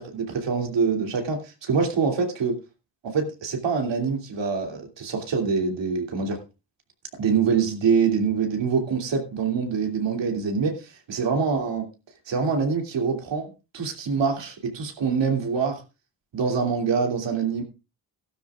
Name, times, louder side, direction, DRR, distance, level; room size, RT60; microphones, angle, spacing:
voice 1, 0.0-2.6 3.0-6.4 7.2-11.9 12.3-15.8 16.3-17.6, right 5 dB, 85° right, 3 dB, 2.9 m, -25 dB
15.5 x 12.5 x 2.5 m, 0.29 s
cardioid pair, 80°, 42 cm